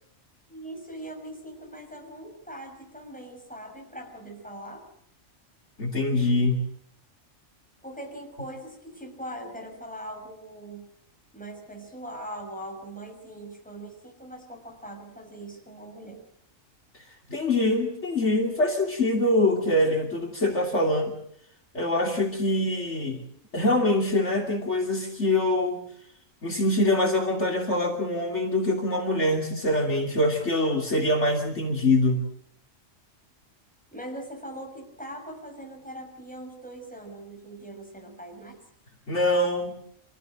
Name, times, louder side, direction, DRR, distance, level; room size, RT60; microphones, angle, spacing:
voice 1, 0.5-4.9 7.8-10.9 11.3-16.2 33.9-38.6, right 1 dB, 5° left, 2 dB, 6.0 m, -41 dB
voice 2, 5.8-6.6 17.3-21.1 21.7-23.2 23.5-25.9 26.4-32.2 39.1-39.8, left 1 dB, 60° left, 1 dB, 3.2 m, -24 dB
27.0 x 16.5 x 7.8 m, 0.68 s
omnidirectional pair, 1.3 m